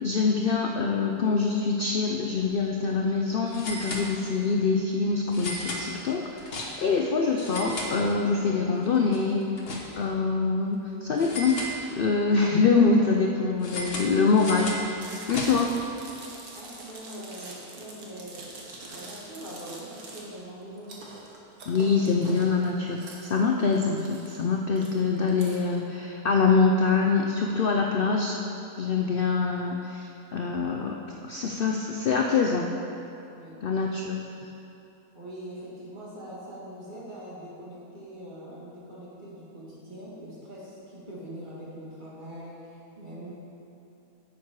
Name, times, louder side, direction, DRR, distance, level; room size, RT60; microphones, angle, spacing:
voice 1, 0.0-9.5 10.0-11.6 11.9-15.0 15.3-15.7 21.7-28.4 28.8-31.0 31.3-32.7 33.6-34.2, left 4 dB, 70° left, 1 dB, 0.5 m, -24 dB
sound 1, 2.5-2.6 2.8-2.9 3.5-4.6 5.3-7.0 7.3-8.5 8.8-10.2 11.2-12.3 13.6-15.8, left 1 dB, 40° left, 1.3 m, -36 dB
Chewing mastication, 14.9-25.6, right 2 dB, 70° right, 1.8 m, -44 dB
voice 2, 16.5-18.6 18.9-21.0 33.3-33.6 35.1-43.3, right 1 dB, 30° right, -7 dB, 2.3 m, -42 dB
10.5 x 8.1 x 4.7 m, 2.8 s
omnidirectional pair, 1.7 m